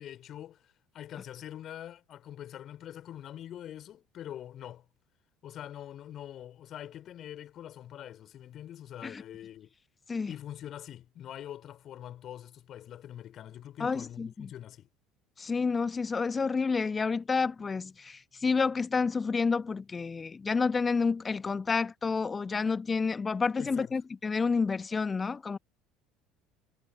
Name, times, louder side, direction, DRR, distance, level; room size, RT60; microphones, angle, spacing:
voice 1, 0.0-4.8 5.4-9.7 10.3-14.9 23.6-23.9, left 11 dB, 40° left, 4.9 m, -44 dB
voice 2, 13.8-14.5 15.4-25.6, left 4 dB, 20° left, 1.5 m, -29 dB
figure-of-eight pair, 65°, 0 cm